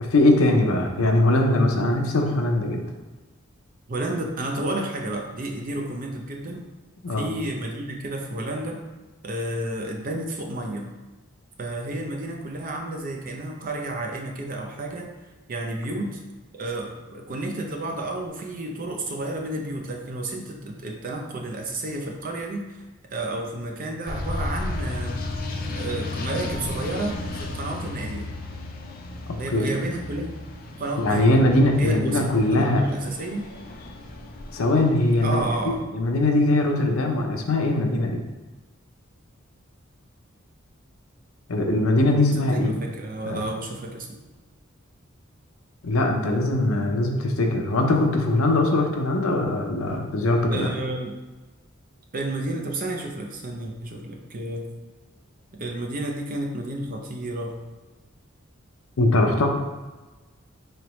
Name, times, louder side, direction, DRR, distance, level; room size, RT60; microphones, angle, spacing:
voice 1, 0.1-2.8 7.0-7.3 29.5-29.7 31.0-32.9 34.5-38.2 41.5-42.7 43.2-43.4 45.8-50.7 59.0-59.5, left 2 dB, 85° left, 3 dB, 0.6 m, -21 dB
voice 2, 3.9-6.6 7.2-8.8 9.2-10.9 11.6-15.1 15.5-16.2 16.5-22.8 23.1-25.3 25.7-28.3 29.3-30.3 30.8-31.4 31.8-33.4 35.2-35.8 42.4-44.1 50.5-51.2 52.1-54.7 55.5-57.6, right 1 dB, 40° right, 2 dB, 0.5 m, -31 dB
sound 1, 24.1-35.8, left 2 dB, 45° left, 0.4 m, -34 dB
3.8 x 3.3 x 3.0 m, 1.2 s
head